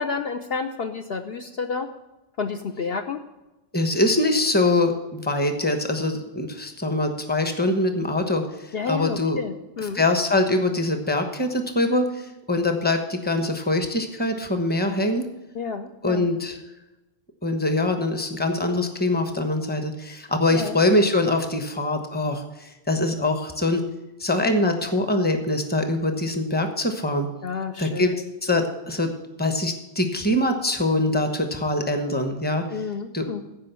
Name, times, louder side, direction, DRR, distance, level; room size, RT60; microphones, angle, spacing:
voice 1, 0.0-1.9 2.4-3.2 8.7-10.0 15.5-16.3 20.5-20.8 27.4-28.2 32.7-33.4, left 5 dB, 60° left, 6 dB, 0.9 m, -30 dB
voice 2, 3.7-9.4 9.9-15.3 16.0-16.6 17.4-23.8 24.2-27.3 27.8-28.1 28.4-29.1 29.4-32.6 33.1-33.4, left 2 dB, 10° left, 6 dB, 1.0 m, -23 dB
15.0 x 5.1 x 6.9 m, 1.0 s
omnidirectional pair, 1.2 m